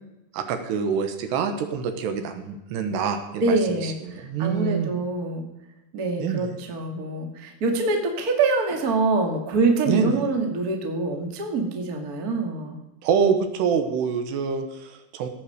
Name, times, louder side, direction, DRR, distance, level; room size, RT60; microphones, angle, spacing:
voice 1, 0.3-4.9 6.2-6.5 9.9-10.1 13.0-15.3, right 6 dB, 75° right, 7 dB, 3.1 m, -26 dB
voice 2, 3.4-5.4 5.9-12.8, right 3 dB, 50° right, 3 dB, 1.0 m, -25 dB
16.0 x 8.8 x 6.6 m, 0.96 s
omnidirectional pair, 5.2 m